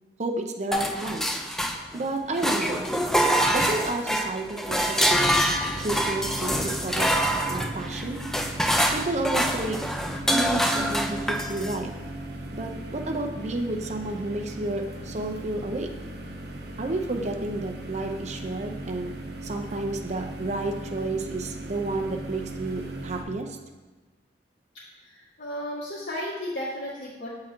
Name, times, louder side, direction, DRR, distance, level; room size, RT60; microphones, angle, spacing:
voice 1, 0.2-1.3 1.9-2.9 3.5-5.4 5.8-7.1 7.5-8.2 8.9-9.8 10.2-11.9 12.5-15.9 16.8-19.1 19.4-23.6, right 2 dB, 40° right, 4 dB, 0.6 m, -31 dB
sound 1, 0.7-2.0 2.4-11.8, equal, 5° left, 0.4 m, -25 dB
sound 2, 5.1-23.2, right 1 dB, 65° right, 0.9 m, -38 dB
voice 2, 25.0-27.3, equal, 80° left, -11 dB, 1.8 m, -34 dB
7.1 x 3.8 x 4.4 m, 1.2 s
head